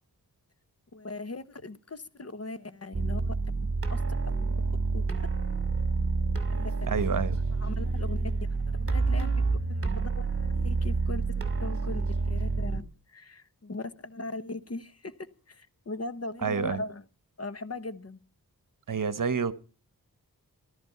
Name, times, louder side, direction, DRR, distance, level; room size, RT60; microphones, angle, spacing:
voice 1, 0.9-5.3 6.5-7.2 7.6-12.8 13.1-17.0 17.4-18.2, left 2 dB, 40° left, 1.0 m, -40 dB
sound 1, 2.9-12.8, right 3 dB, 35° right, 2.5 m, -28 dB
voice 2, 6.9-7.4 16.4-16.8 18.9-19.5, right 6 dB, 60° right, 1.1 m, -28 dB
14.5 x 13.0 x 5.6 m
wide cardioid pair, 115°, 37 cm